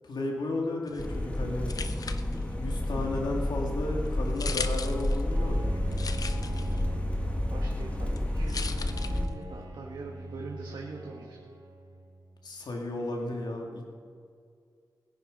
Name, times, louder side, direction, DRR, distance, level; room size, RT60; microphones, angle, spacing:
voice 1, 0.0-1.8 2.6-5.7 12.4-13.9, left 2 dB, 80° left, 0 dB, 2.3 m, -33 dB
sound 1, 0.9-9.6, left 5 dB, 55° left, 0.6 m, -41 dB
sound 2, 1.0-9.3, left 1 dB, 15° left, 1.4 m, -30 dB
Bowed string instrument, 5.3-12.4, right 2 dB, 70° right, 2.5 m, -41 dB
voice 2, 7.5-11.4, right 3 dB, 85° right, 0 dB, 1.4 m, -43 dB
20.5 x 9.3 x 5.4 m, 2.3 s
wide cardioid pair, 120°, 7 cm